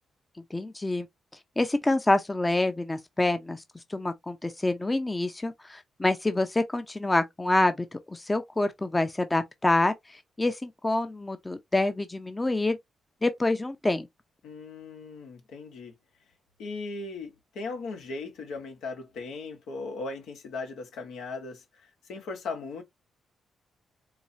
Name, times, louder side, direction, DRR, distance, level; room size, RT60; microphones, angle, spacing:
voice 1, 0.5-1.1 1.6-3.6 3.9-9.9 10.4-12.8 13.2-14.1, left 2 dB, 15° left, 0.6 m, -26 dB
voice 2, 14.4-15.9 16.6-22.8, left 3 dB, 85° left, 1.3 m, -38 dB
4.6 x 2.3 x 2.7 m
cardioid pair, 80°, 0 cm